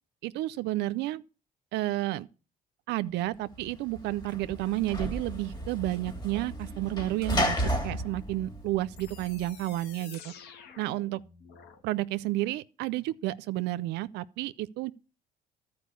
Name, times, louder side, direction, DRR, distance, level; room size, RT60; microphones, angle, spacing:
voice 1, 0.2-1.2 1.7-2.3 2.9-7.6 7.8-10.3 10.8-11.2 11.8-14.9, right 16 dB, 85° right, 0.5 m, -31 dB
Sliding door / Slam, 3.6-9.5, equal, 25° left, 2.5 m, -33 dB
sound 1, 9.0-11.8, left 6 dB, 75° left, 1.7 m, -50 dB
12.0 x 4.9 x 8.2 m
cardioid pair, 110°, 17 cm